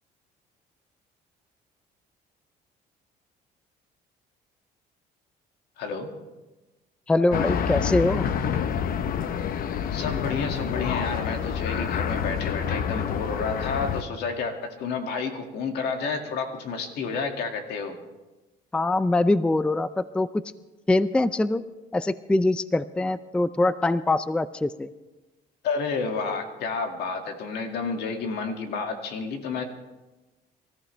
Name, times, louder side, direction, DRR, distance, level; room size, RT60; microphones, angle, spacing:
voice 1, 5.8-6.1 9.9-18.0 25.6-29.6, left 4 dB, 75° left, 4 dB, 2.2 m, -30 dB
voice 2, 7.1-8.3 18.7-20.4 20.9-21.6 21.9-24.9, left 2 dB, 5° left, 15 dB, 0.4 m, -23 dB
sound 1, 7.3-14.0, left 7 dB, 60° left, 0.9 m, -28 dB
25.0 x 14.0 x 3.3 m, 1.1 s
cardioid pair, 110°, 17 cm